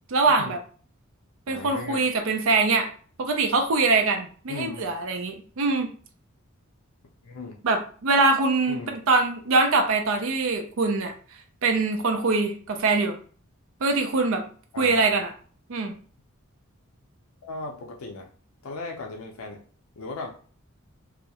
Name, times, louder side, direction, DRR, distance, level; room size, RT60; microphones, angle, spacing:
voice 1, 0.1-0.6 1.5-2.9 3.2-5.9 7.6-11.1 11.6-13.2 13.8-14.4 14.8-15.3 15.7-15.9, right 3 dB, 65° right, 5 dB, 0.4 m, -23 dB
voice 2, 1.5-2.1 4.5-4.9 7.2-7.6 8.7-8.9 14.7-15.1 17.4-18.3 18.6-19.6 20.0-20.3, left 3 dB, 80° left, 1 dB, 0.4 m, -37 dB
2.2 x 2.0 x 2.8 m, 0.43 s
head